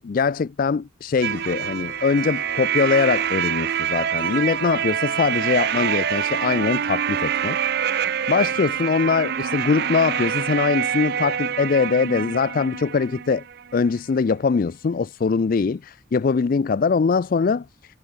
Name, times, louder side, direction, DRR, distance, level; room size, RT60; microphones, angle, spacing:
voice 1, 0.0-7.6 8.3-13.4 13.7-18.0, left 5 dB, 45° left, 0.4 m, -22 dB
sound 1, 1.2-4.9 5.2-5.9 6.2-6.9, left 3 dB, 65° left, 5.5 m, -45 dB
sound 2, 1.2-13.9, right 9 dB, 55° right, 0.6 m, -26 dB
head